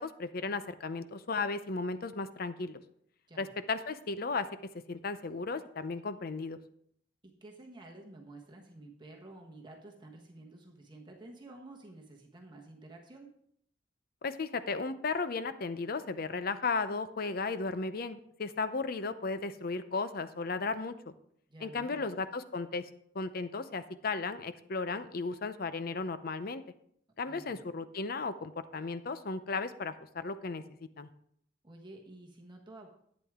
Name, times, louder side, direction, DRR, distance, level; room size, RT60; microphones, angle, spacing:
voice 1, 0.0-2.8 3.4-4.5 4.9-6.6 14.2-20.9 21.6-22.9 23.1-26.6 27.2-30.6 31.0-31.1, left 4 dB, 50° left, 12 dB, 0.6 m, -35 dB
voice 2, 7.2-13.3 21.5-22.0 27.2-27.6 31.6-32.9, right 2 dB, 25° right, 1 dB, 1.3 m, -51 dB
11.5 x 9.0 x 3.6 m, 0.68 s
head